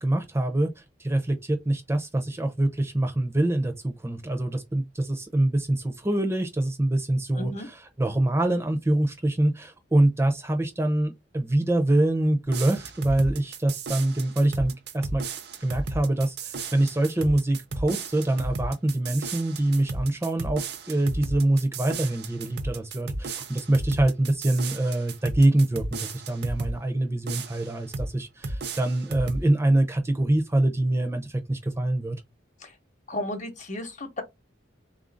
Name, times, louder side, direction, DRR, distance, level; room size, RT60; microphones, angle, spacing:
voice 1, 0.0-15.2 15.6-32.2, right 1 dB, 15° right, 0.5 m, -25 dB
voice 2, 7.3-7.7 32.6-32.7 33.1-34.2, left 1 dB, 40° left, 0.8 m, -33 dB
sound 1, 12.5-26.8 27.3-28.1 28.4-29.5, right 2 dB, 60° right, 0.6 m, -34 dB
3.7 x 2.5 x 3.8 m
head